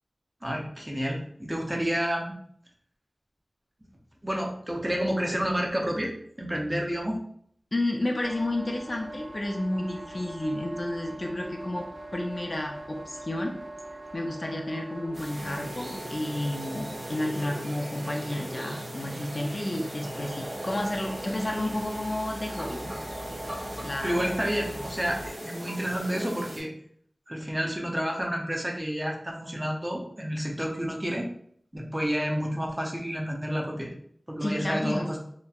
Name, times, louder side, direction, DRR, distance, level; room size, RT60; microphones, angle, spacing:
voice 1, 0.4-2.4 4.2-7.2 24.0-26.7 27.3-31.3 31.7-33.9 34.3-35.2, equal, 20° right, 0 dB, 0.5 m, -30 dB
voice 2, 7.7-13.5 14.1-22.8 23.8-24.2 24.7-24.8 34.4-35.1, left 1 dB, 45° left, 1 dB, 0.4 m, -31 dB
sound 1, 8.2-25.3, right 1 dB, 90° right, 0.5 m, -42 dB
sound 2, 15.1-26.6, equal, 40° right, 0.9 m, -39 dB
2.8 x 2.1 x 2.3 m, 0.65 s
wide cardioid pair, 60°, 0 cm